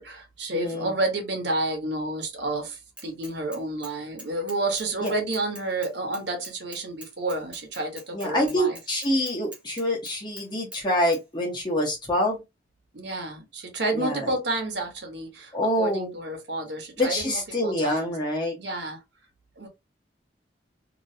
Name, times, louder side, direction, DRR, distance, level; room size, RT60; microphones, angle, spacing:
voice 1, 0.0-8.8 12.9-18.2 18.6-19.0 19.6-19.7, right 2 dB, 65° right, 1.1 m, -30 dB
voice 2, 0.5-0.9 5.0-5.1 8.1-12.4 13.9-14.3 15.5-16.1 17.0-18.6, left 1 dB, 25° left, 1.1 m, -26 dB
Bicycle / Mechanisms, 3.0-3.9 4.2-10.5 10.7-10.8 11.1-11.2, right 1 dB, 5° right, 0.8 m, -44 dB
3.0 x 2.6 x 2.7 m
head